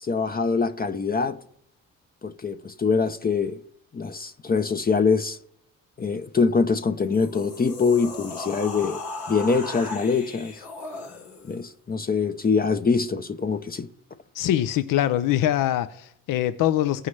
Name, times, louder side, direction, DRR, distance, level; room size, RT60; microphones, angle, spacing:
voice 1, 0.0-1.4 2.2-3.6 3.9-5.4 6.0-9.0 9.3-10.5 11.4-13.9, left 5 dB, 25° left, 0.6 m, -24 dB
sound 1, 7.0-11.6, left 3 dB, 90° left, 1.3 m, -37 dB
voice 2, 14.3-17.1, left 12 dB, 65° left, 0.6 m, -23 dB
16.0 x 5.7 x 3.2 m
supercardioid pair, 60°, 35 cm